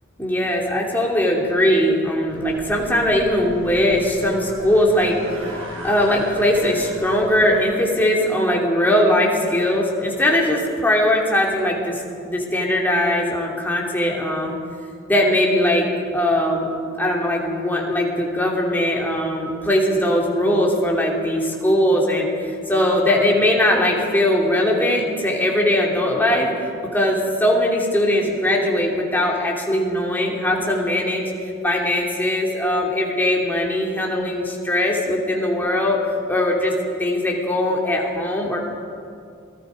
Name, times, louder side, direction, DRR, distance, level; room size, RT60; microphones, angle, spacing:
voice 1, 0.2-5.5 5.8-14.5 15.1-16.7 17.0-26.5 26.9-31.2 31.6-36.0 36.3-36.7 37.0-38.6, left 1 dB, 10° left, -2 dB, 3.0 m, -20 dB
sound 1, 2.3-7.5, equal, 85° right, 5.3 m, -37 dB
27.5 x 19.0 x 5.2 m, 2.4 s
head